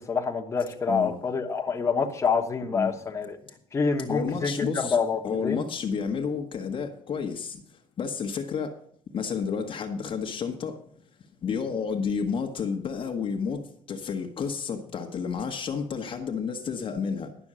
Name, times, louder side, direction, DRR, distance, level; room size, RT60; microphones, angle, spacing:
voice 1, 0.0-3.4 3.7-5.7, left 5 dB, 20° left, 1.3 m, -27 dB
voice 2, 0.9-1.2 2.7-2.9 4.1-5.0 5.2-8.8 9.1-10.8 11.4-17.3, left 6 dB, 40° left, 1.1 m, -31 dB
11.0 x 6.1 x 7.5 m
cardioid pair, 140°, 14 cm